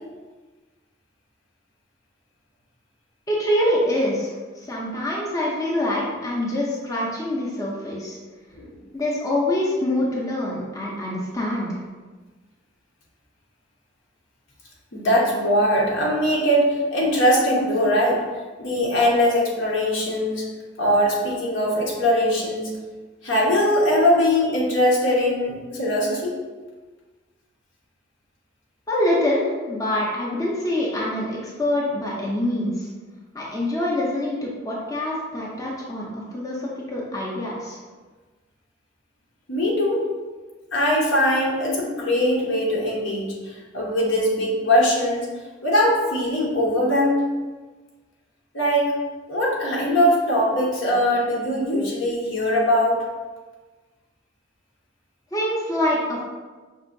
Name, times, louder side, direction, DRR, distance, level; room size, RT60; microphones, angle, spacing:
voice 1, 3.3-8.2 8.9-11.8 28.9-32.9 33.3-37.8 55.3-56.2, left 1 dB, 15° left, -5 dB, 0.5 m, -25 dB
voice 2, 14.9-18.2 18.6-20.5 20.8-22.7 23.2-26.3 39.5-40.0 40.7-45.3 45.6-47.2 48.5-48.9 49.3-53.0, equal, 75° left, -4 dB, 1.0 m, -21 dB
5.3 x 2.7 x 2.6 m, 1.3 s
head